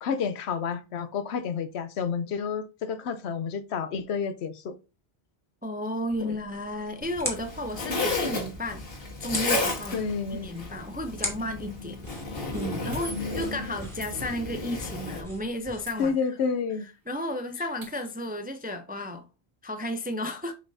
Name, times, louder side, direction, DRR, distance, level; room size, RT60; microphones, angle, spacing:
voice 1, 0.0-4.8 6.2-6.4 9.9-10.5 13.1-13.6 16.0-16.9, left 6 dB, 80° left, 0.9 m, -30 dB
voice 2, 5.6-8.8 9.2-10.0 10.4-12.0 12.5-16.1 17.1-19.2 19.6-20.5, left 1 dB, 15° right, 0.4 m, -33 dB
sound 1, 6.1-16.1, left 1 dB, ahead, 2.2 m, -41 dB
Zipper (clothing), 7.0-15.2, left 2 dB, 60° left, 1.7 m, -33 dB
sound 2, 11.7-11.9 12.9-13.5 14.0-14.8 15.9-16.7 17.0-17.1 17.4-18.3, equal, 75° right, 2.9 m, -47 dB
6.9 x 5.1 x 2.7 m
omnidirectional pair, 1.1 m